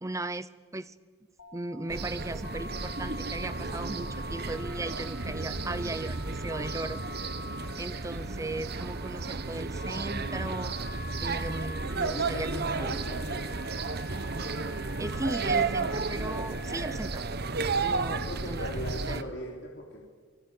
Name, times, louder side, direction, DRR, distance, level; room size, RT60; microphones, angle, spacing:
voice 1, 0.0-0.9 1.5-7.0 7.8-10.8 11.2-12.9 15.0-17.2 17.8-19.4, right 2 dB, 15° right, 15 dB, 0.8 m, -37 dB
Telephone, 1.4-17.1, left 2 dB, 75° left, 4.0 m, -46 dB
sound 1, 1.9-19.2, right 4 dB, 50° right, 1.1 m, -33 dB
voice 2, 12.0-13.6 17.9-20.0, left 1 dB, 60° left, -2 dB, 3.5 m, -39 dB
28.5 x 20.5 x 8.6 m, 1.5 s
head